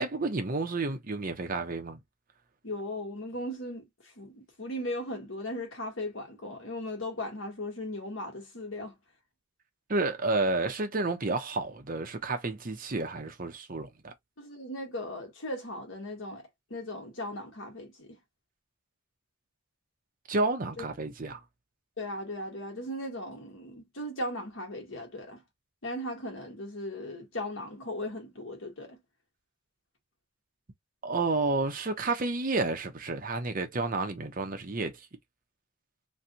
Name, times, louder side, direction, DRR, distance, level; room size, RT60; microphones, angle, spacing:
voice 1, 0.0-2.0 9.9-14.1 20.3-21.4 31.0-35.0, right 3 dB, 45° right, 0.8 m, -30 dB
voice 2, 2.6-9.0 14.4-18.2 20.8-20.9 22.0-25.4 25.8-29.0, left 1 dB, 80° left, 1.5 m, -37 dB
3.2 x 2.6 x 2.7 m
head